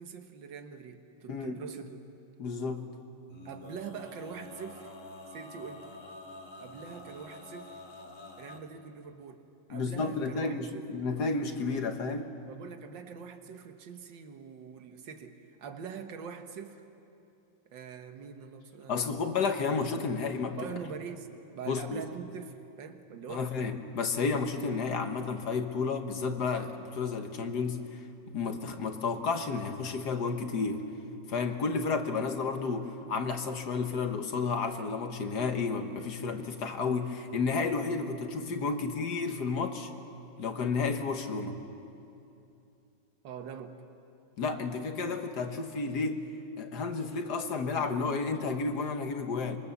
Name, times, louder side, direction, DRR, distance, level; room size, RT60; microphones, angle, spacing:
voice 1, 0.0-2.0 3.5-4.9 5.3-6.0 6.6-7.8 8.4-9.4 9.7-10.9 12.5-16.9 17.7-19.3 20.6-23.5 43.2-43.8, right 6 dB, 85° right, 7 dB, 1.9 m, -44 dB
voice 2, 2.4-2.8 9.7-12.3 18.9-20.6 21.7-22.0 23.3-28.0 28.3-30.9 31.3-39.9 40.4-41.6 44.4-46.3 46.6-49.6, left 4 dB, 65° left, 6 dB, 1.7 m, -31 dB
Male singing, 3.3-8.6, left 2 dB, 45° left, 2.2 m, -47 dB
25.5 x 23.0 x 7.1 m, 2.7 s
omnidirectional pair, 2.0 m